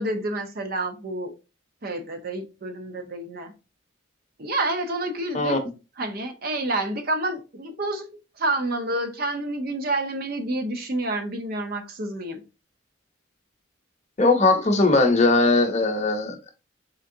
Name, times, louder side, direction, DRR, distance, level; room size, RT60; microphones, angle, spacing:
voice 1, 0.0-1.3 1.8-3.5 4.4-5.6 6.0-8.0 8.4-12.4, right 2 dB, 45° right, 0.6 m, -28 dB
voice 2, 14.2-16.5, left 3 dB, 35° left, 0.7 m, -19 dB
3.8 x 3.3 x 2.7 m
head